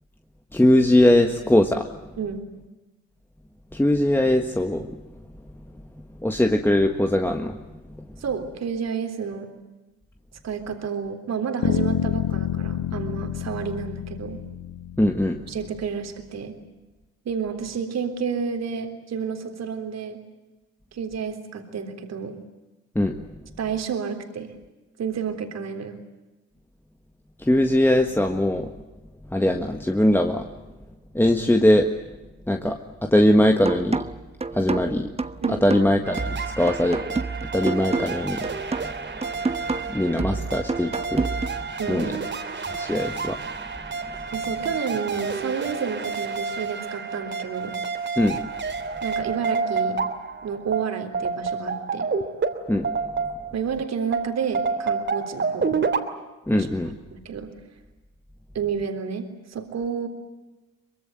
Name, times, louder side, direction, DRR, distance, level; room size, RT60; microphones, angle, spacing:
voice 1, 0.5-1.9 3.7-5.0 6.2-7.6 7.9-8.0 15.0-15.4 22.9-23.1 27.4-28.7 29.3-30.5 31.1-31.9 32.5-34.1 34.5-35.1 35.5-37.0 37.5-38.5 39.9-41.3 41.9-42.2 42.8-43.4 48.2-48.4 52.7-52.9 56.5-56.9, left 1 dB, 5° left, 4 dB, 1.6 m, -21 dB
voice 2, 8.2-9.5 10.4-14.4 15.5-16.6 17.3-20.2 20.9-22.4 23.6-24.5 25.0-26.0 35.4-35.7 41.8-42.3 44.3-47.8 49.0-50.0 50.4-52.1 53.5-55.7 56.5-56.7 57.1-57.5 58.5-60.1, right 6 dB, 60° right, 6 dB, 3.6 m, -30 dB
sound 1, 11.6-15.6, left 10 dB, 70° left, 1.3 m, -28 dB
sound 2, 33.7-41.7, right 3 dB, 20° right, 1.2 m, -29 dB
sound 3, 36.0-53.7 54.1-56.0, right 5 dB, 40° right, 3.2 m, -29 dB
24.0 x 22.0 x 9.1 m, 1.1 s
cardioid pair, 90°, 30 cm